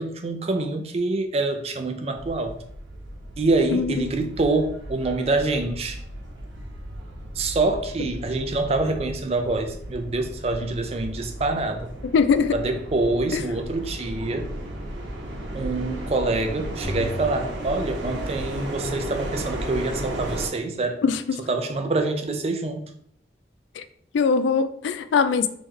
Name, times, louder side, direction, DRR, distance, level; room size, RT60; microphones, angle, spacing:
voice 1, 0.0-2.6 3.4-6.0 7.4-11.9 12.5-14.5 15.5-21.0 21.5-22.9, right 2 dB, 35° right, 6 dB, 0.4 m, -26 dB
sound 1, 2.1-20.5, right 1 dB, 80° right, 0.9 m, -35 dB
voice 2, 3.7-4.0 12.1-12.5 13.3-13.4 21.0-21.4 23.8-23.9 24.1-25.5, left 5 dB, 85° left, 11 dB, 0.3 m, -21 dB
sound 2, 16.8-19.0, left 1 dB, 35° left, 0.6 m, -36 dB
3.2 x 3.0 x 3.6 m, 0.67 s
head